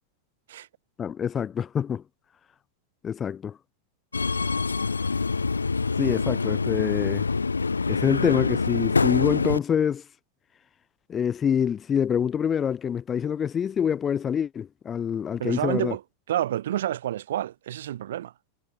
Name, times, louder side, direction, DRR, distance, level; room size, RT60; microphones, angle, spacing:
voice 1, 1.0-2.0 3.0-3.6 6.0-7.3 7.9-10.0 11.1-16.0, left 8 dB, 25° left, 0.6 m, -26 dB
Subway metro underground, 4.1-9.6, left 4 dB, 75° left, 0.6 m, -25 dB
voice 2, 15.4-16.0 16.3-18.3, right 12 dB, 60° right, 1.1 m, -29 dB
figure-of-eight pair, 90°, 0 cm